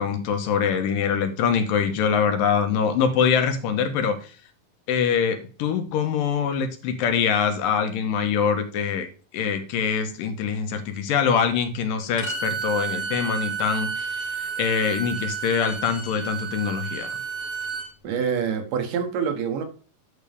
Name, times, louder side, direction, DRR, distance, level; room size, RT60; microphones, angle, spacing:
voice 1, 0.0-4.4 4.9-9.1 9.3-17.2, left 7 dB, 80° left, 7 dB, 2.6 m, -24 dB
Bowed string instrument, 12.2-17.9, right 6 dB, 30° left, 1.0 m, -31 dB
voice 2, 18.0-19.6, right 7 dB, 75° right, 5 dB, 2.7 m, -26 dB
9.6 x 6.7 x 3.5 m, 0.37 s
omnidirectional pair, 3.9 m